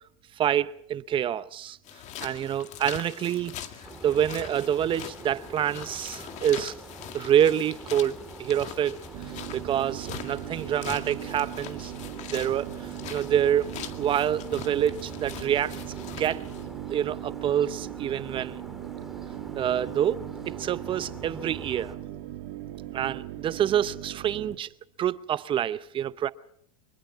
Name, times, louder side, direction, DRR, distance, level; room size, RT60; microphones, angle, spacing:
voice 1, 0.4-1.8 2.2-3.5 4.0-6.7 7.1-9.0 9.5-11.9 12.3-15.7 16.2-16.4 16.9-18.6 19.5-22.0 22.9-24.7 25.0-26.3, right 10 dB, 30° right, 0.8 m, -27 dB
sound 1, 1.8-16.7, left 9 dB, 40° left, 2.1 m, -42 dB
sound 2, 3.8-22.0, right 2 dB, ahead, 2.7 m, -45 dB
sound 3, 9.1-24.6, right 14 dB, 60° right, 1.9 m, -39 dB
24.5 x 20.5 x 5.8 m
hypercardioid pair, 115°, 17 cm